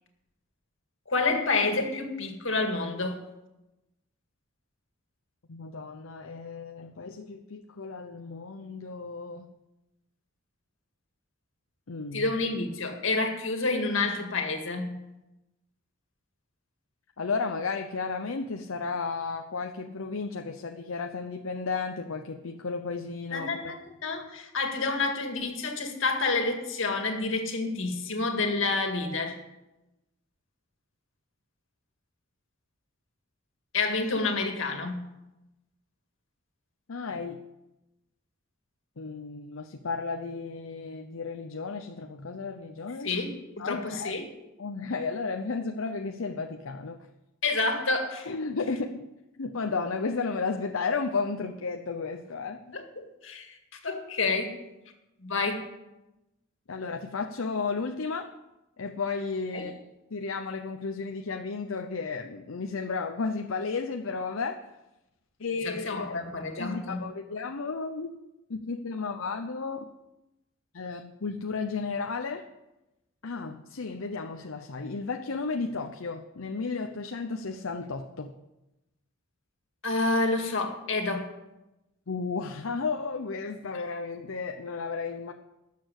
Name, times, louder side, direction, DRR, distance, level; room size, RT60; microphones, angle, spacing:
voice 1, 1.1-3.2 12.1-15.0 23.3-29.4 33.7-35.0 43.0-44.3 47.4-48.3 52.7-53.6 53.8-54.5 55.2-55.6 59.5-59.6 65.6-67.0 79.8-81.3, left 3 dB, 65° left, 5 dB, 2.1 m, -29 dB
voice 2, 5.5-9.5 11.9-12.3 17.2-23.5 36.9-37.4 39.0-43.1 43.6-44.3 44.6-47.1 48.3-49.0 49.4-52.8 56.7-58.3 58.8-59.8 60.1-64.6 65.4-66.2 66.6-68.2 68.5-69.9 70.7-72.5 73.2-78.3 82.1-85.3, left 4 dB, 85° left, 5 dB, 0.7 m, -33 dB
13.0 x 6.8 x 8.2 m, 0.97 s
head